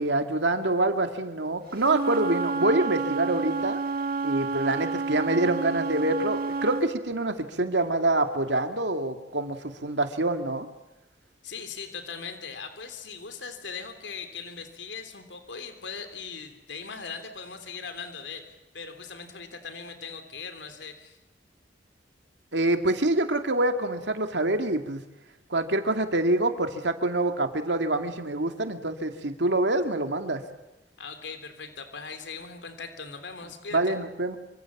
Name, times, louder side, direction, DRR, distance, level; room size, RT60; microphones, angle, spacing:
voice 1, 0.0-3.8 4.2-10.7 22.5-25.0 25.5-30.4 33.7-34.4, right 2 dB, 75° right, 6 dB, 2.4 m, -26 dB
Wind instrument woodwind instrument, 1.8-6.9, right 4 dB, 55° right, 1.7 m, -29 dB
voice 2, 11.4-21.2 31.0-34.0, left 5 dB, 85° left, 8 dB, 3.3 m, -40 dB
27.5 x 25.0 x 7.4 m, 1.0 s
head